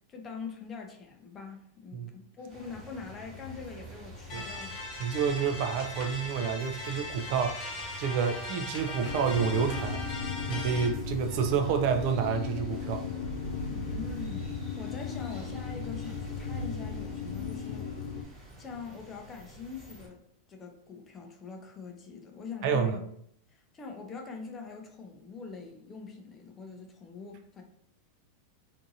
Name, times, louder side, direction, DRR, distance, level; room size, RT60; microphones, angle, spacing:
voice 1, 0.1-4.8 13.7-17.9 18.2-18.3 18.6-20.2 20.5-23.0 23.5-27.6, left 5 dB, 20° left, 0.5 m, -43 dB
sound 1, 2.5-20.1, equal, 20° right, 1.3 m, -48 dB
sound 2, 4.3-10.9, left 2 dB, 40° left, 1.0 m, -39 dB
voice 2, 5.0-7.7 8.0-10.0 10.5-13.0 22.6-23.0, right 6 dB, 50° right, 0.4 m, -29 dB
sound 3, 9.0-18.2, left 5 dB, 85° left, 0.3 m, -36 dB
2.6 x 2.6 x 2.7 m
supercardioid pair, 145°, 0 cm